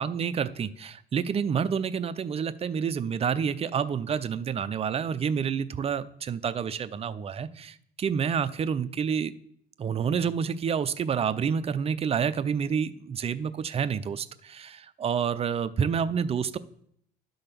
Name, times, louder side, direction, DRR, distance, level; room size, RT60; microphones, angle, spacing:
voice 1, 0.0-9.3 9.8-16.6, right 7 dB, 35° right, 13 dB, 0.6 m, -28 dB
11.5 x 3.9 x 6.8 m, 0.67 s
cardioid pair, 110°, 17 cm